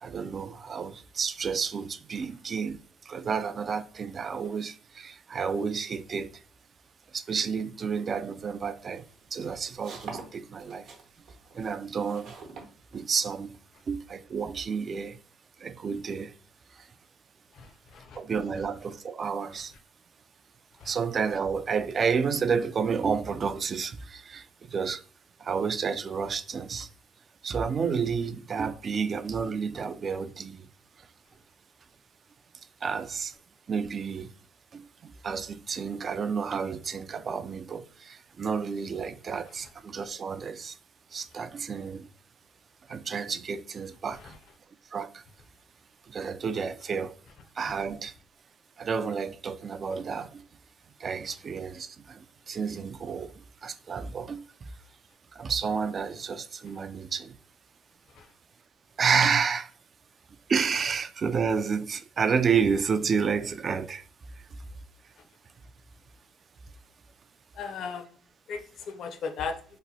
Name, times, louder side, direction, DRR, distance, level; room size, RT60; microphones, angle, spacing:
voice 1, 0.0-6.4 7.1-9.0 9.3-10.9 11.5-12.3 12.9-13.6 13.9-15.2 15.6-16.4 16.7-16.9 18.2-19.7 20.8-25.0 25.4-26.9 27.4-30.7 32.8-33.3 33.7-34.3 34.7-40.8 41.1-42.1 42.9-44.3 44.9-45.2 46.1-47.2 47.6-48.1 48.8-50.4 51.0-53.3 53.6-54.7 55.3-57.4 59.0-59.7 60.5-64.1 64.4-64.6, right 6 dB, 40° right, 0.3 m, -30 dB
sound 1, 8.6-13.6, right 4 dB, 60° right, 0.8 m, -46 dB
voice 2, 17.5-18.2 20.8-20.9 44.2-44.4 58.2-58.3 67.5-68.1 68.5-69.6, left 5 dB, 60° left, 0.6 m, -37 dB
2.9 x 2.2 x 4.1 m
cardioid pair, 95°, 0 cm